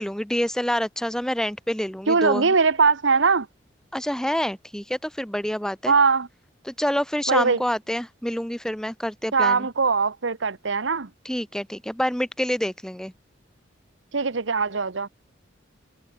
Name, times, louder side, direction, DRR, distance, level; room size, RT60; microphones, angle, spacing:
voice 1, 0.0-2.5 3.9-5.9 6.7-9.7 11.2-13.1, equal, 5° left, 1.1 m, -27 dB
voice 2, 2.1-3.5 5.9-6.3 7.3-7.6 9.3-11.1 14.1-15.1, right 4 dB, 75° right, 1.0 m, -21 dB
head